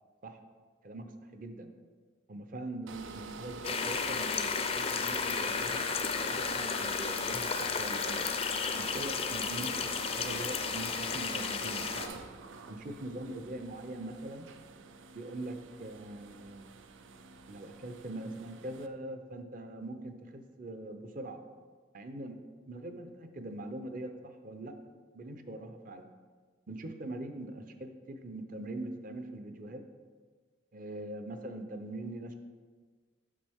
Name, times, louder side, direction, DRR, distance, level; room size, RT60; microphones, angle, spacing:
voice 1, 1.3-1.7 2.3-8.2 8.8-12.2 12.7-14.5 15.1-16.8 17.5-21.4 21.9-22.4 22.7-24.7 25.1-26.1 26.7-29.8 30.7-32.3, right 1 dB, 45° right, 6 dB, 0.6 m, -42 dB
sound 1, 2.9-18.9, right 4 dB, 90° right, 0.5 m, -46 dB
sound 2, 3.6-12.1, left 5 dB, 30° left, 0.4 m, -33 dB
8.4 x 6.2 x 3.5 m, 1.5 s
head